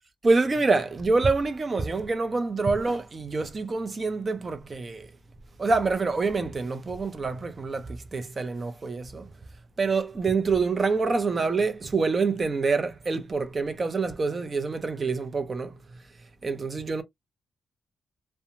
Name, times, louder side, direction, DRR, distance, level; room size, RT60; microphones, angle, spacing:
voice 1, 0.2-5.1 5.6-9.3 9.8-15.7 16.4-17.0, right 4 dB, 35° right, 0.6 m, -26 dB
2.8 x 2.2 x 2.6 m
cardioid pair, 80°, 0 cm